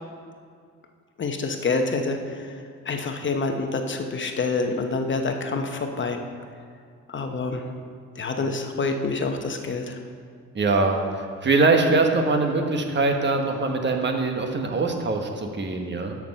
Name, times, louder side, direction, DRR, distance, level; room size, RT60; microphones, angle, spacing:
voice 1, 1.2-2.6 2.9-6.2 7.1-7.6 8.2-10.0, left 3 dB, 40° left, 5 dB, 0.9 m, -27 dB
voice 2, 10.5-16.2, right 3 dB, 35° right, 3 dB, 1.3 m, -23 dB
13.0 x 6.1 x 5.4 m, 2.2 s
cardioid pair, 90°, 30 cm